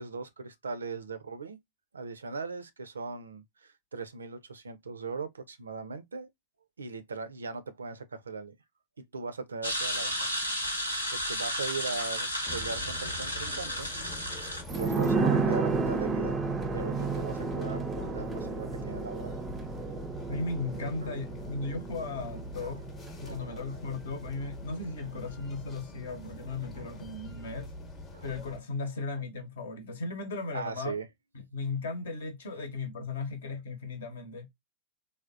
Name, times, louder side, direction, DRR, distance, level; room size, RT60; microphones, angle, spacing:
voice 1, 0.0-1.6 1.9-6.3 6.8-8.6 9.0-13.9 14.7-16.4 16.7-19.4 21.0-21.1 22.6-22.8 23.2-23.7 26.7-26.9 28.1-28.3 28.8-28.9 30.5-31.1, right 4 dB, 75° right, 0.4 m, -39 dB
sound 1, 9.6-14.6, equal, 90° left, 1.0 m, -33 dB
sound 2, 12.4-28.6, left 2 dB, 25° left, 0.8 m, -44 dB
sound 3, 14.7-24.0 24.3-24.4, right 4 dB, 20° right, 0.5 m, -32 dB
voice 2, 20.3-22.8 23.2-27.7 28.2-30.9 31.5-34.5, left 3 dB, 65° left, 0.8 m, -36 dB
3.4 x 2.1 x 2.5 m
figure-of-eight pair, 90°, 0 cm